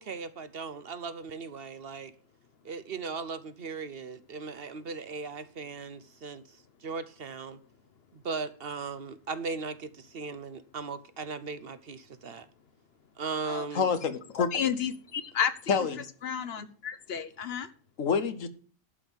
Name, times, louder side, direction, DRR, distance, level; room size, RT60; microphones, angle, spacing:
voice 1, 0.0-2.1 2.6-7.6 8.1-12.5 13.2-13.9, right 4 dB, 55° right, 0.9 m, -38 dB
voice 2, 13.7-14.5 15.7-16.0 18.0-18.5, left 6 dB, 85° left, 1.5 m, -27 dB
voice 3, 14.4-15.9 16.2-17.7, left 8 dB, 55° left, 1.1 m, -32 dB
11.5 x 5.5 x 7.8 m
omnidirectional pair, 1.3 m